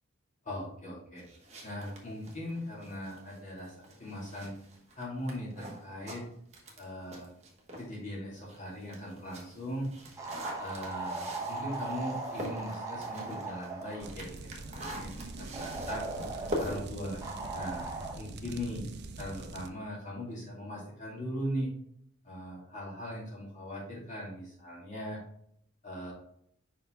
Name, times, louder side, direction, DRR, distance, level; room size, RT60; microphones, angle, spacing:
voice 1, 0.4-1.2 1.6-4.5 5.0-6.2 6.8-7.3 7.8-9.9 10.6-16.0 16.6-17.2 17.5-18.8 19.2-21.7 22.2-25.2 25.8-26.1, equal, 40° left, -4 dB, 2.3 m, -39 dB
sound 1, 1.2-8.0 8.4-18.1, equal, 35° right, 1.2 m, -44 dB
sound 2, 10.2-14.1 15.5-16.7 17.2-18.2, right 3 dB, 15° right, 1.0 m, -38 dB
sound 3, 14.0-19.7, right 3 dB, 55° right, 0.5 m, -44 dB
5.4 x 4.8 x 3.7 m, 0.69 s
head